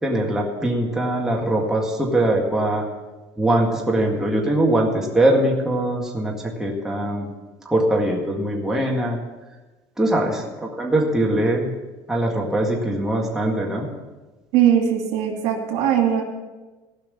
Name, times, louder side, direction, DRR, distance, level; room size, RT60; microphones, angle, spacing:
voice 1, 0.0-2.9 3.4-7.3 7.7-9.2 10.0-11.7 12.1-13.9, right 1 dB, 5° right, -2 dB, 1.9 m, -22 dB
voice 2, 14.5-16.2, right 9 dB, 80° right, 1 dB, 2.5 m, -19 dB
16.5 x 5.8 x 7.0 m, 1.2 s
cardioid pair, 140°, 10 cm